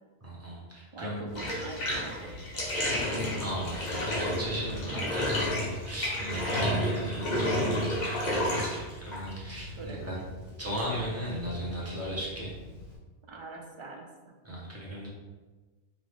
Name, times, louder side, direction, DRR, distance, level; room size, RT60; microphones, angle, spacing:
voice 1, 0.2-1.3 3.4-9.7 10.0-10.2 10.6-12.5 14.4-15.1, right 1 dB, 15° right, -6 dB, 1.1 m, -36 dB
voice 2, 0.9-3.4 4.9-5.2 9.8-10.3 13.2-14.4, right 3 dB, 40° right, 2 dB, 0.4 m, -44 dB
Bathtub (filling or washing), 1.3-13.0, left 1 dB, 45° left, 1.0 m, -32 dB
4.8 x 2.4 x 3.6 m, 1.3 s
omnidirectional pair, 1.0 m